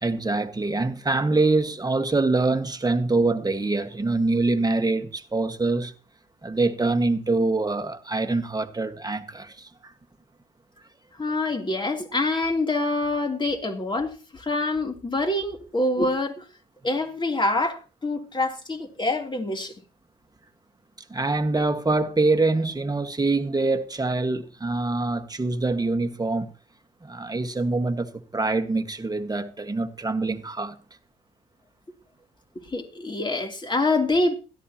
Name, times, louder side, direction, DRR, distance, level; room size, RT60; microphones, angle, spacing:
voice 1, 0.0-5.9 6.4-9.9 21.1-26.5 27.0-30.7, right 3 dB, 20° right, 1.7 m, -24 dB
voice 2, 11.2-16.4 16.8-19.7 32.5-34.3, left 2 dB, 25° left, 3.3 m, -26 dB
17.0 x 13.5 x 3.0 m
hypercardioid pair, 55°, 18 cm